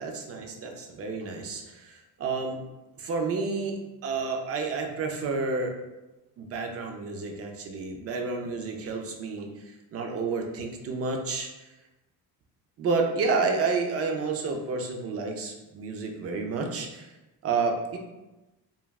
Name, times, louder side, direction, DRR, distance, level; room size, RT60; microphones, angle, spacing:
voice 1, 0.0-2.6 3.0-5.7 6.4-11.7 12.8-17.1 17.4-18.0, right 4 dB, 40° right, 2 dB, 0.4 m, -30 dB
3.2 x 2.3 x 2.3 m, 1.0 s
cardioid pair, 145°, 39 cm